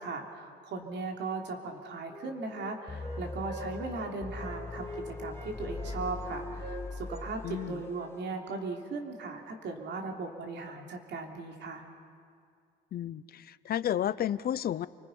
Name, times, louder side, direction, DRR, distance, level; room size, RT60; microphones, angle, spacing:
voice 1, 0.0-11.8, right 3 dB, 70° right, 2 dB, 3.3 m, -38 dB
Wind instrument woodwind instrument, 1.6-5.1 5.3-8.6, right 2 dB, 30° right, 3.5 m, -47 dB
sound 1, 2.9-7.9, left 2 dB, 15° left, 1.0 m, -40 dB
voice 2, 7.4-7.8 12.9-14.9, left 10 dB, 55° left, 17 dB, 0.7 m, -32 dB
29.0 x 24.5 x 5.5 m, 2.3 s
cardioid pair, 115°, 19 cm